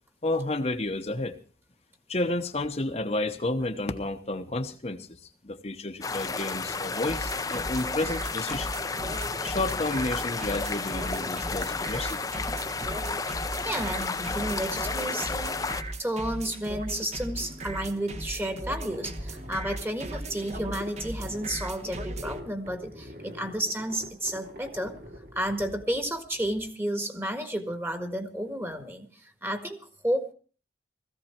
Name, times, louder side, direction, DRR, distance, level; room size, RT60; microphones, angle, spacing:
voice 1, 0.2-1.4 2.1-8.8 9.4-12.2, left 2 dB, 35° left, 5 dB, 1.0 m, -31 dB
sound 1, 6.0-15.8, left 4 dB, 20° left, 0.7 m, -32 dB
sound 2, 7.0-22.4, right 1 dB, 40° right, 1.4 m, -37 dB
voice 2, 13.6-15.6 16.0-25.0 25.3-30.3, right 1 dB, 15° right, 7 dB, 1.7 m, -32 dB
sound 3, 17.2-26.7, left 1 dB, 60° right, 3.8 m, -46 dB
17.5 x 15.0 x 4.5 m, 0.39 s
head